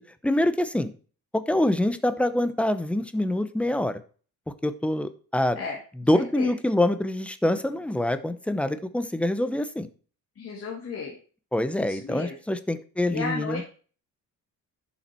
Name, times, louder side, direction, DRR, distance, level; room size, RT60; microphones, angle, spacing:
voice 1, 0.2-0.9 1.3-4.0 4.6-5.6 6.1-9.9 11.5-13.6, left 1 dB, 5° left, 11 dB, 0.8 m, -25 dB
voice 2, 6.1-6.5 10.4-11.2 11.8-12.3 13.1-13.6, left 5 dB, 45° left, -1 dB, 2.3 m, -34 dB
11.5 x 7.2 x 4.5 m, 0.40 s
cardioid pair, 150°, 33 cm